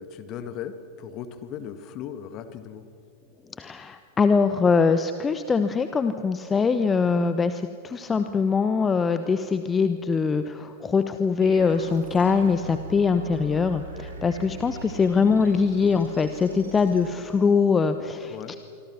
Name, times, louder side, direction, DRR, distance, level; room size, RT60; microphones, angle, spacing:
voice 1, 0.0-2.9 18.3-18.6, left 8 dB, 35° left, 10 dB, 1.9 m, -37 dB
voice 2, 3.6-18.6, left 5 dB, 15° left, 10 dB, 1.0 m, -23 dB
sound 1, 11.4-17.9, right 1 dB, 70° right, 3.6 m, -40 dB
25.5 x 25.5 x 6.3 m, 2.5 s
figure-of-eight pair, 90°, 0 cm